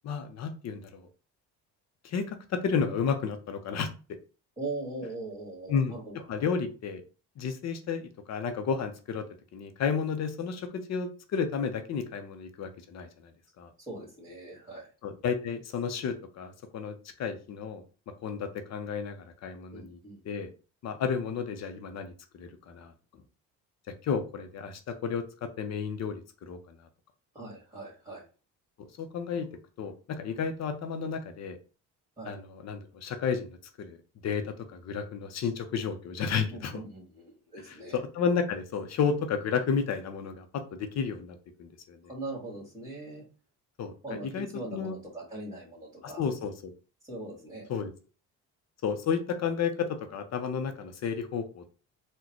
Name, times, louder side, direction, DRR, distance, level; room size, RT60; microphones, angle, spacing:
voice 1, 0.0-1.1 2.0-3.9 5.7-5.9 6.3-7.0 7.4-9.3 9.5-13.3 13.6-13.7 15.0-17.8 18.2-20.0 20.3-20.5 20.8-22.9 24.0-26.6 29.0-29.5 29.8-31.6 32.2-34.0 34.2-36.8 37.7-42.0 43.8-43.9 44.2-45.0 46.0-46.7 47.7-47.9 48.8-51.8, left 6 dB, 50° left, 7 dB, 0.6 m, -32 dB
voice 2, 4.6-6.5 13.8-14.9 19.7-20.2 27.3-28.2 32.2-32.4 36.5-38.0 42.1-43.2 44.0-46.2 47.1-47.7, right 2 dB, 15° right, -6 dB, 1.8 m, -41 dB
3.8 x 2.2 x 2.9 m, 0.35 s
cardioid pair, 90°, 35 cm